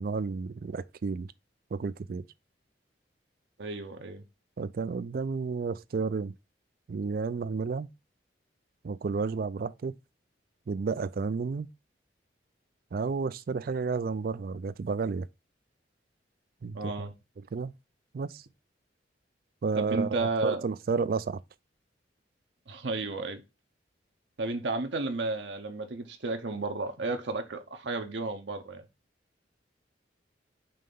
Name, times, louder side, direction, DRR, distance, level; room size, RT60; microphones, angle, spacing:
voice 1, 0.0-1.3 1.7-2.3 4.6-6.4 6.9-7.9 8.8-9.9 10.7-11.7 12.9-15.3 16.6-17.1 17.5-17.7 18.1-18.5 19.6-21.4, right 4 dB, 50° right, 0.4 m, -31 dB
voice 2, 3.6-4.2 16.7-17.1 19.8-20.6 22.7-23.4 24.4-28.8, right 3 dB, 75° right, 0.8 m, -32 dB
5.5 x 3.3 x 5.4 m
head